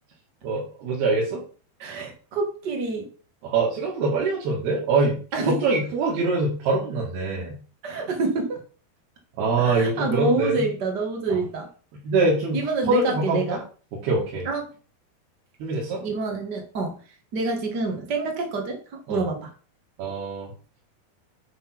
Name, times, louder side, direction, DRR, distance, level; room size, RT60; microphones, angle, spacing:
voice 1, 0.4-1.4 3.4-7.6 9.4-10.7 11.3-11.4 12.0-13.6 13.9-14.5 15.6-16.1 19.1-19.3 20.0-20.5, right 3 dB, 70° right, -4 dB, 4.0 m, -24 dB
voice 2, 1.8-3.1 5.3-5.5 7.8-8.6 9.6-11.7 12.5-13.6 14.4-14.7 16.0-16.9 17.3-19.5, right 3 dB, 90° right, 3 dB, 0.9 m, -27 dB
9.6 x 3.9 x 6.0 m, 0.38 s
omnidirectional pair, 4.8 m